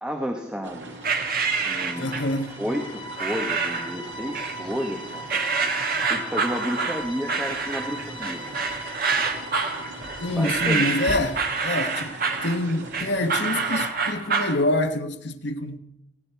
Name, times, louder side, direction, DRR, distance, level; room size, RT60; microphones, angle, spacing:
voice 1, 0.0-0.9 1.6-2.1 2.6-5.4 6.1-8.4 10.3-11.0, equal, 5° right, 1.0 m, -31 dB
sound 1, 0.6-13.9, right 2 dB, 80° right, 2.4 m, -40 dB
sound 2, 1.0-11.7, equal, 25° left, 1.3 m, -40 dB
sound 3, 1.0-2.4 3.2-3.9 4.3-4.9 5.3-14.6, right 4 dB, 55° right, 1.8 m, -27 dB
voice 2, 2.0-2.5 10.2-11.4 11.6-12.2 12.4-15.8, left 1 dB, 75° left, 1.1 m, -26 dB
18.5 x 16.0 x 4.6 m
head